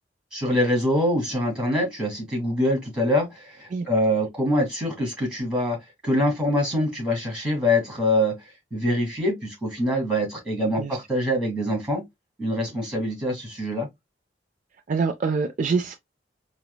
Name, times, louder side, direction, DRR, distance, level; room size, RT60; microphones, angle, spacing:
voice 1, 0.3-5.8 6.0-8.3 8.7-12.0 12.4-13.9, left 1 dB, 5° right, 2.0 m, -24 dB
voice 2, 14.9-15.9, right 4 dB, 45° right, 0.3 m, -25 dB
4.5 x 2.0 x 2.2 m
head